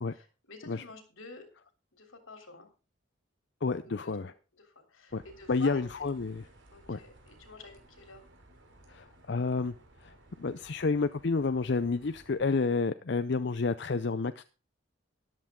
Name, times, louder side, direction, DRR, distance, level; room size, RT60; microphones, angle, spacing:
voice 1, 0.1-1.5 1.9-2.7 3.8-5.8 6.7-8.2, left 3 dB, 85° left, 6 dB, 3.4 m, -49 dB
voice 2, 3.6-4.3 5.1-5.2 5.5-6.5 6.9-7.0 8.9-9.7 10.0-14.4, left 4 dB, 55° left, 11 dB, 0.5 m, -30 dB
sound 1, 5.1-12.5, right 1 dB, 70° right, 3.0 m, -58 dB
13.5 x 11.0 x 3.8 m, 0.32 s
head